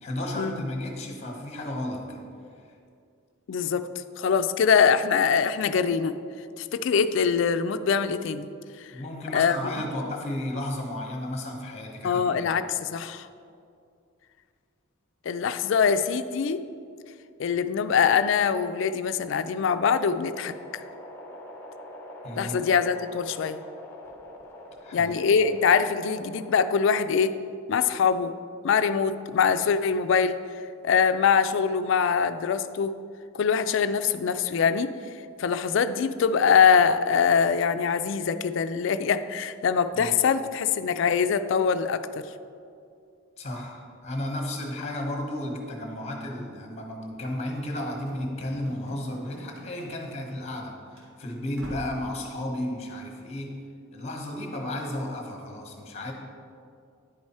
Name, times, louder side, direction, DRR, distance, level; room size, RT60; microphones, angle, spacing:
voice 1, 0.0-2.2 8.9-12.5 22.2-22.6 24.8-25.1 39.9-40.1 43.4-53.6 53.9-56.1, left 1 dB, 30° left, 2 dB, 1.1 m, -33 dB
voice 2, 3.5-3.9 4.2-6.2 6.6-8.5 8.8-8.9 9.3-9.6 12.0-13.3 15.3-16.6 17.4-20.8 22.3-23.6 24.9-27.3 27.7-28.4 28.6-30.4 30.8-32.9 33.4-34.9 35.4-42.2, left 6 dB, 65° left, 11 dB, 0.3 m, -23 dB
sound 1, 19.5-27.2, left 1 dB, 10° left, 1.0 m, -45 dB
Run / Slam, 47.8-50.7 50.9-51.1 51.5-52.0, equal, 75° right, 1.8 m, -46 dB
10.0 x 4.7 x 4.2 m, 2.4 s
head